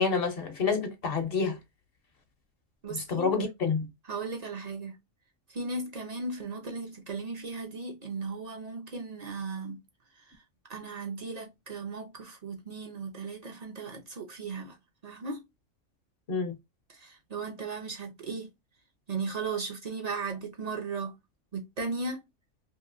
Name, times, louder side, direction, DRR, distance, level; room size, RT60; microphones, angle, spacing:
voice 1, 0.0-1.6 2.9-3.9 16.3-16.6, left 5 dB, 55° left, 0.8 m, -28 dB
voice 2, 2.8-3.4 4.1-4.9 5.5-9.8 10.7-14.8 15.0-15.4 16.9-18.5 19.1-21.1 21.5-22.2, right 4 dB, 45° right, 0.5 m, -36 dB
2.9 x 2.7 x 2.4 m
omnidirectional pair, 1.4 m